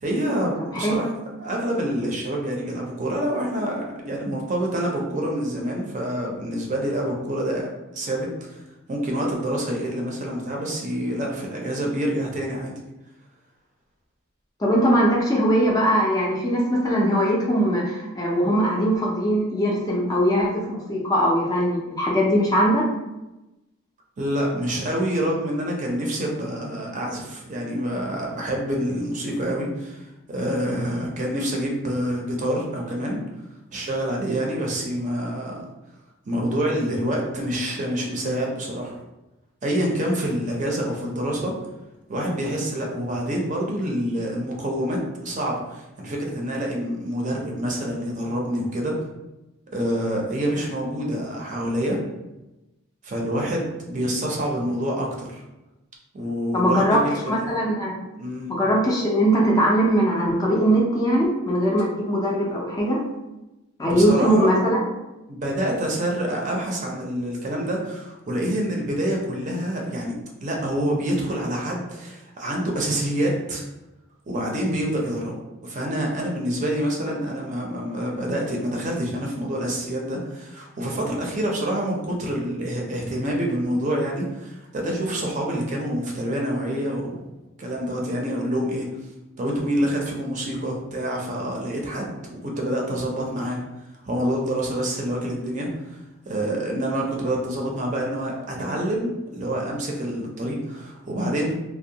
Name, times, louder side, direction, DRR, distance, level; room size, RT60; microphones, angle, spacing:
voice 1, 0.0-1.1 1.4-7.7 7.9-8.6 8.9-12.7 24.2-33.2 33.7-35.6 36.2-39.0 39.6-41.5 42.1-49.0 49.7-52.0 53.0-55.4 56.1-57.5 58.2-58.5 63.8-64.5 65.3-70.2 70.4-73.6 74.3-75.4 75.6-87.1 87.6-88.9 89.4-93.6 94.0-96.0 96.3-101.5, equal, 35° right, -1 dB, 0.5 m, -27 dB
voice 2, 14.6-22.9 56.5-57.9 58.5-63.0 63.8-64.8, equal, 20° left, -3 dB, 0.4 m, -21 dB
2.7 x 2.1 x 2.7 m, 0.99 s
head